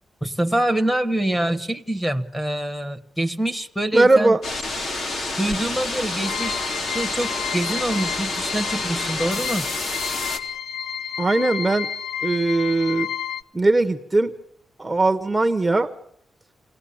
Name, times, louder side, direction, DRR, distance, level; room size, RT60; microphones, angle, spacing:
voice 1, 0.2-4.4 5.4-6.6 6.9-9.7, right 1 dB, 5° left, 13 dB, 1.3 m, -25 dB
voice 2, 3.9-4.4 11.2-11.9 12.2-13.1 13.5-14.3 14.8-15.9, right 2 dB, 10° right, 6 dB, 1.0 m, -19 dB
sound 1, 4.4-10.4, left 2 dB, 60° left, 3.4 m, -28 dB
sound 2, 6.2-13.4, left 9 dB, 85° left, 0.9 m, -31 dB
28.5 x 18.0 x 8.6 m, 0.72 s
wide cardioid pair, 160°, 0 cm